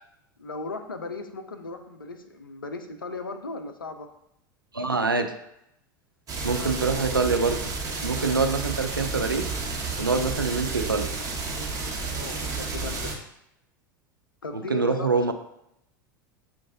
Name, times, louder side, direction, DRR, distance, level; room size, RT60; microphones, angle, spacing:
voice 1, 0.4-4.1 6.5-6.7 8.2-8.5 12.1-13.1 14.4-15.1, left 3 dB, 85° left, 7 dB, 0.5 m, -37 dB
voice 2, 4.7-5.3 6.4-7.7 8.0-9.5 10.0-11.1 14.5-15.3, right 4 dB, 90° right, 6 dB, 0.4 m, -25 dB
sound 1, 6.3-13.2, right 3 dB, 30° right, 1.1 m, -31 dB
7.0 x 2.5 x 2.6 m, 0.79 s
figure-of-eight pair, 80°, 11 cm